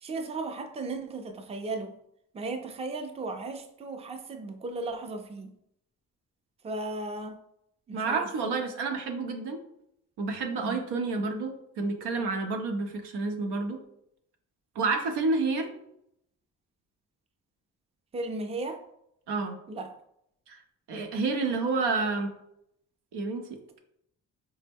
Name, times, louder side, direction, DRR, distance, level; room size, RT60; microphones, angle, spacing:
voice 1, 0.0-1.9 2.3-5.5 6.6-7.4 7.9-8.3 10.6-10.8 18.1-18.8 19.7-19.9, right 2 dB, 15° right, 5 dB, 0.5 m, -35 dB
voice 2, 7.9-9.6 10.2-13.8 14.7-15.7 19.3-19.6 20.5-20.6 20.9-22.3 23.1-23.5, right 3 dB, 80° right, 4 dB, 0.7 m, -29 dB
4.2 x 2.1 x 3.4 m, 0.76 s
supercardioid pair, 55°, 40 cm